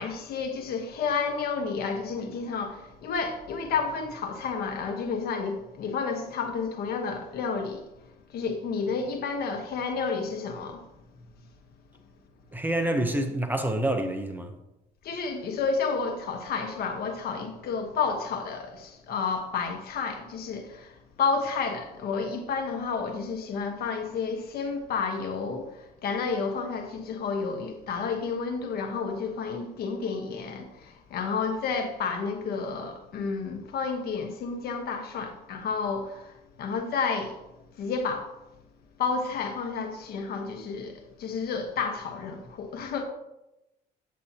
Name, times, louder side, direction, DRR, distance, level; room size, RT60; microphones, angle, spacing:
voice 1, 0.0-7.8 8.3-10.8 15.0-37.4 37.8-38.4 39.0-43.0, left 5 dB, 65° left, 1.2 m, -31 dB
voice 2, 12.5-14.5, right 1 dB, 10° right, 0.8 m, -27 dB
8.5 x 7.4 x 2.8 m
cardioid pair, 110°, 17 cm